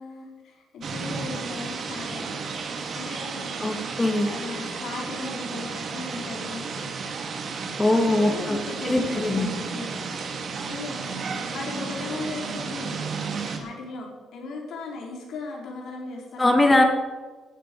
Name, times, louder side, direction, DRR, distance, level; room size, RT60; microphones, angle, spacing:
voice 1, 0.0-2.5 2.9-3.8 4.2-6.7 8.1-13.1 13.4-16.8, left 3 dB, 75° left, -1 dB, 4.8 m, -37 dB
sound 1, 0.8-13.6, right 5 dB, 55° right, 2.4 m, -33 dB
voice 2, 3.6-4.3 7.8-8.6 8.8-9.5 16.4-16.8, left 2 dB, 20° left, 4 dB, 2.9 m, -21 dB
15.5 x 8.4 x 8.0 m, 1.3 s
cardioid pair, 90°, 0 cm